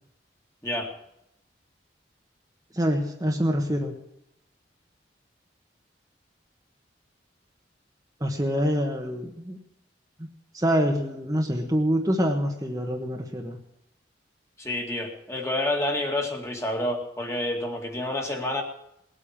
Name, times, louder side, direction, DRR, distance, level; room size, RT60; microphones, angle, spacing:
voice 1, 2.7-3.9 8.2-9.6 10.2-10.3 10.5-13.6, equal, 20° right, 1 dB, 1.3 m, -25 dB
voice 2, 14.6-18.6, left 1 dB, 15° left, 2 dB, 2.2 m, -28 dB
19.5 x 8.6 x 7.4 m, 0.79 s
head